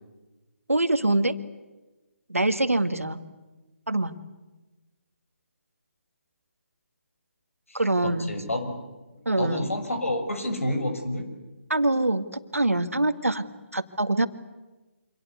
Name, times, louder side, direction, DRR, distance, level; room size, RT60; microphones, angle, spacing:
voice 1, 0.7-1.4 2.3-3.2 3.9-4.2 7.7-8.3 9.3-9.7 11.7-13.4 13.7-14.3, right 2 dB, 85° right, 10 dB, 2.0 m, -24 dB
voice 2, 7.7-8.8 9.4-11.3, left 1 dB, 75° left, 7 dB, 6.5 m, -29 dB
27.0 x 26.0 x 8.3 m, 1.1 s
figure-of-eight pair, 145°, 7 cm